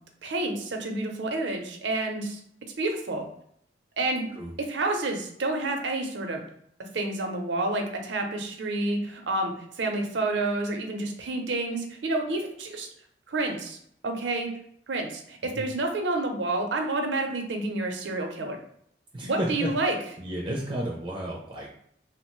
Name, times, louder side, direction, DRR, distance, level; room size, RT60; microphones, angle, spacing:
voice 1, 0.2-2.4 2.8-3.3 4.0-4.3 4.7-6.4 6.9-12.9 13.3-13.8 14.0-14.5 14.9-18.6 19.2-20.0, right 2 dB, 80° right, 3 dB, 0.6 m, -29 dB
voice 2, 19.1-19.7 20.2-21.7, right 1 dB, 30° right, -2 dB, 0.4 m, -32 dB
2.9 x 2.0 x 3.0 m, 0.69 s
head